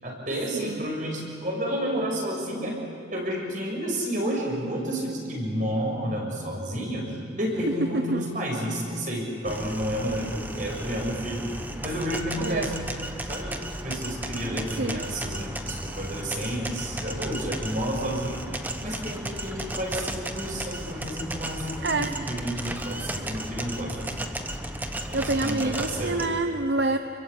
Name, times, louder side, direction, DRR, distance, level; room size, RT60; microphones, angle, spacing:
voice 1, 0.0-2.8 3.1-7.0 7.3-12.7 13.2-13.5 13.8-18.4 18.8-24.1 25.0-26.2, equal, 45° right, 0 dB, 6.4 m, -31 dB
voice 2, 0.5-0.9 7.7-8.3 12.4-12.7 14.7-15.0 21.8-22.1 25.1-27.0, right 2 dB, 65° right, 7 dB, 0.9 m, -27 dB
sound 1, 9.4-26.3, right 1 dB, 10° right, 1.1 m, -34 dB
29.5 x 22.5 x 8.5 m, 2.5 s
head